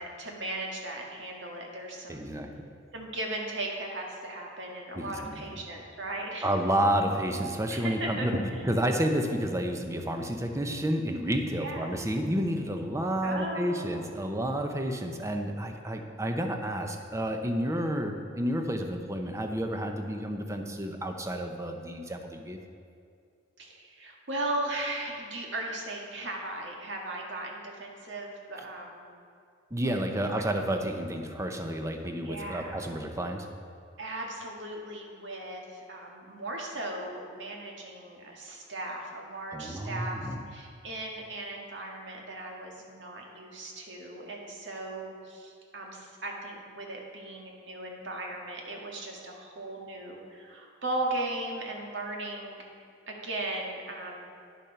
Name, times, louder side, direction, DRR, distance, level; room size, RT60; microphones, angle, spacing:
voice 1, 0.0-2.2 2.9-6.5 7.7-8.6 11.5-11.9 13.2-14.1 23.6-29.1 32.2-32.8 34.0-52.7 53.1-54.3, right 1 dB, 70° right, 0 dB, 1.7 m, -37 dB
voice 2, 2.1-2.5 4.9-5.4 6.4-8.3 8.7-22.6 29.7-33.5 39.5-40.4, right 1 dB, 15° right, 4 dB, 0.8 m, -30 dB
10.0 x 7.0 x 5.8 m, 2.4 s
head